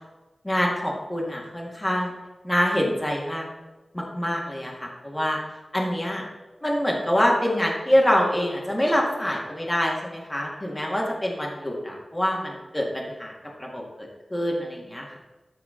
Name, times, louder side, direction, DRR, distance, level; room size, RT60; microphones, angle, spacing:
voice 1, 0.4-2.1 2.4-3.5 3.9-5.4 5.7-6.2 6.6-13.3 13.6-15.2, equal, 15° left, -2 dB, 1.8 m, -25 dB
12.5 x 4.6 x 3.8 m, 1.1 s
wide cardioid pair, 85°, 0 cm